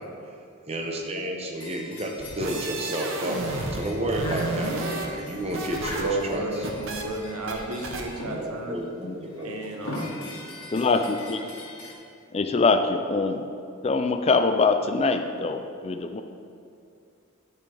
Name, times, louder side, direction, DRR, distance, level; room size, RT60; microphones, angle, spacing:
voice 1, 0.7-6.4 8.4-9.5, right 1 dB, 30° right, 1 dB, 0.9 m, -31 dB
sound 1, 1.6-8.6 9.2-11.9, left 2 dB, 90° left, 1.8 m, -41 dB
sound 2, 2.2-3.8 4.1-6.0 6.3-7.0 7.5-7.6 7.8-8.0, right 2 dB, 60° right, 0.9 m, -32 dB
voice 2, 6.0-8.8 9.4-10.1, right 2 dB, 85° right, 2 dB, 1.1 m, -32 dB
voice 3, 10.7-11.4 12.3-13.5 13.8-16.2, left 4 dB, 30° left, 7 dB, 0.3 m, -23 dB
9.6 x 8.2 x 3.4 m, 2.5 s
head